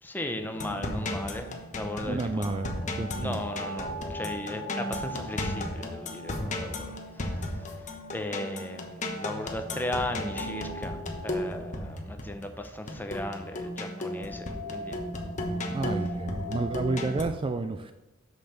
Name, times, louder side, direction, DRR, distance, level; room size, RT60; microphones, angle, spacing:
voice 1, 0.0-2.4 3.1-15.0, left 1 dB, 10° left, 6 dB, 0.7 m, -37 dB
sound 1, 0.5-17.2, left 1 dB, 35° left, 1.1 m, -35 dB
voice 2, 2.0-3.5 15.6-17.9, right 3 dB, 25° right, 8 dB, 0.3 m, -31 dB
6.6 x 6.5 x 5.7 m, 1.0 s
head